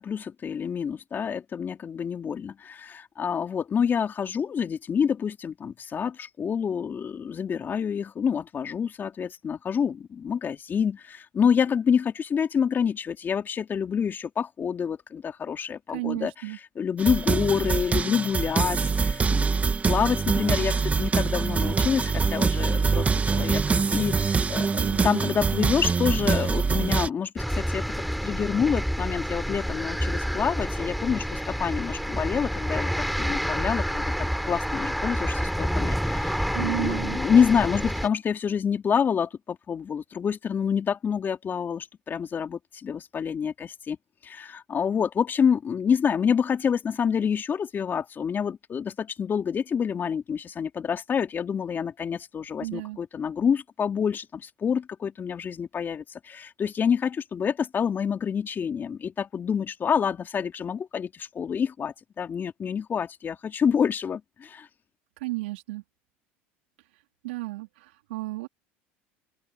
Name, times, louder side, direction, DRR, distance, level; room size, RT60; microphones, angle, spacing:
voice 1, 0.0-16.3 16.8-23.6 23.9-27.9 28.2-32.9 33.2-44.0 44.2-64.7, left 7 dB, 35° left, 3.5 m, -27 dB
voice 2, 15.9-16.6 24.6-25.2 36.5-37.2 52.6-53.0 65.2-65.8 67.2-68.5, right 20 dB, 85° right, 4.0 m, -33 dB
sound 1, 17.0-27.1, right 5 dB, 25° right, 2.9 m, -24 dB
sound 2, 27.4-38.1, equal, ahead, 4.6 m, -28 dB
open air
supercardioid pair, 90°, 6 cm